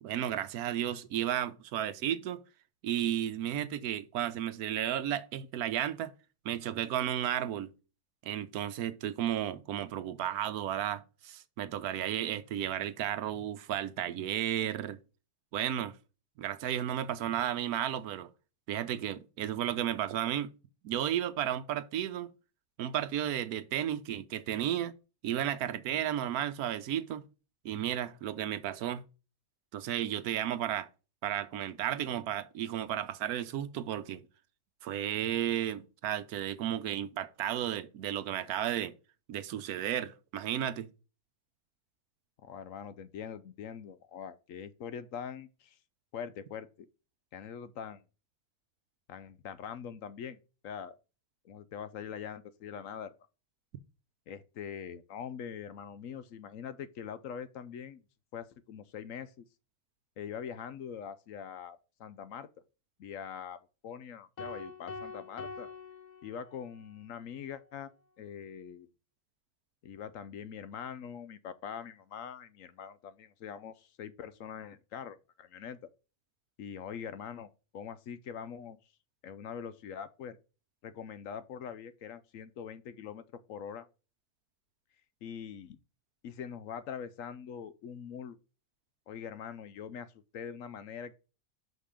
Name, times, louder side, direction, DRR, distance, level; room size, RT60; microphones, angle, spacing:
voice 1, 0.0-2.4 2.8-6.1 6.4-7.7 8.2-15.0 15.5-16.0 16.4-18.3 18.7-20.5 20.8-22.3 22.8-24.9 25.2-27.2 27.6-29.0 29.7-30.9 31.2-34.2 34.8-38.9 39.3-40.9, right 11 dB, 80° right, 1.2 m, -33 dB
voice 2, 42.4-45.8 46.1-46.7 47.3-48.0 49.1-50.9 51.4-53.1 54.3-58.0 58.3-59.4 60.2-62.5 63.0-63.6 63.8-65.7 66.2-67.9 68.2-68.9 69.8-75.9 76.6-78.8 79.2-80.4 80.8-83.9 85.2-85.8 86.2-88.4 89.1-91.1, left 7 dB, 65° left, 0.9 m, -43 dB
sound 1, 64.4-66.8, left 4 dB, 85° left, 0.3 m, -44 dB
6.0 x 5.4 x 4.9 m
omnidirectional pair, 1.6 m